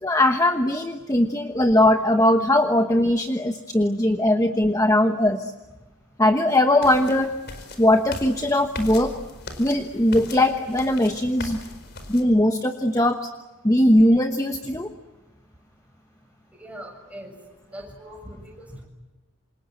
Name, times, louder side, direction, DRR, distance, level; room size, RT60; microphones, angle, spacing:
voice 1, 0.0-5.5 6.2-7.3 7.8-9.2 9.6-11.6 12.1-13.3 13.6-14.9, left 1 dB, 15° left, 6 dB, 1.2 m, -20 dB
sound 1, 6.8-12.2, left 2 dB, 50° left, 4.7 m, -39 dB
voice 2, 16.6-17.3 17.7-18.7, equal, 5° right, 1 dB, 7.0 m, -40 dB
28.0 x 27.5 x 7.7 m, 1.2 s
head